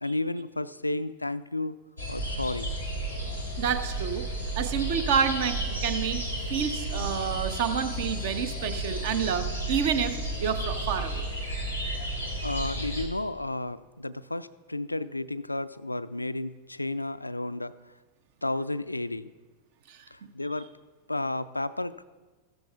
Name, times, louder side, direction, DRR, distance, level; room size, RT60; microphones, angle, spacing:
voice 1, 0.0-1.8 2.1-2.7 12.4-17.7 18.4-19.3 20.1-20.7 21.1-22.0, left 2 dB, 85° left, 15 dB, 0.3 m, -32 dB
sound 1, 2.0-13.0, right 1 dB, 90° right, 1.9 m, -32 dB
voice 2, 3.6-4.3 4.6-6.2 6.5-10.2 10.4-11.3 19.9-20.3, right 7 dB, 50° right, 10 dB, 0.8 m, -29 dB
15.0 x 13.0 x 2.4 m, 1.3 s
figure-of-eight pair, 90°, 0 cm